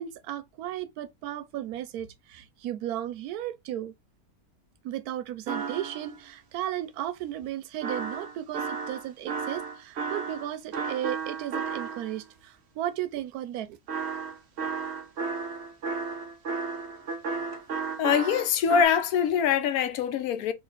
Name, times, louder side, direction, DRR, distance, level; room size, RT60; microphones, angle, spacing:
voice 1, 0.0-3.9 4.8-13.8, right 12 dB, 85° right, 1.1 m, -35 dB
sound 1, 5.5-6.2 7.8-12.2 13.9-18.8, right 5 dB, 55° right, 0.8 m, -33 dB
voice 2, 18.0-20.5, left 7 dB, 80° left, 1.1 m, -24 dB
3.0 x 2.8 x 3.9 m
omnidirectional pair, 1.6 m